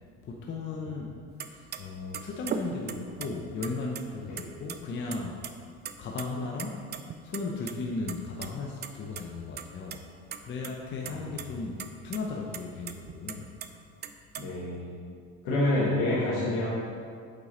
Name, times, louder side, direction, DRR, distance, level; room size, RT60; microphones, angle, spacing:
voice 1, 0.2-1.1 1.4-5.4 6.0-6.8 7.2-10.0 10.4-13.5, left 3 dB, 40° left, -1 dB, 0.8 m, -36 dB
sound 1, 1.4-1.5 1.7-1.8 2.1-3.3 3.6-4.4 4.7-4.8 5.1-5.5 5.8-6.3 6.6-7.7 8.1-8.5 8.8-8.9 9.2-9.3 9.6-10.0 10.3-10.7 11.1-11.4 11.8-11.9 12.1-12.2 12.5-13.7 14.0-14.4, right 8 dB, 35° right, 0.4 m, -37 dB
voice 2, 14.4-15.0 15.4-16.7, left 1 dB, 70° left, -7 dB, 1.6 m, -28 dB
7.5 x 4.7 x 4.2 m, 2.2 s
supercardioid pair, 100°, 30 cm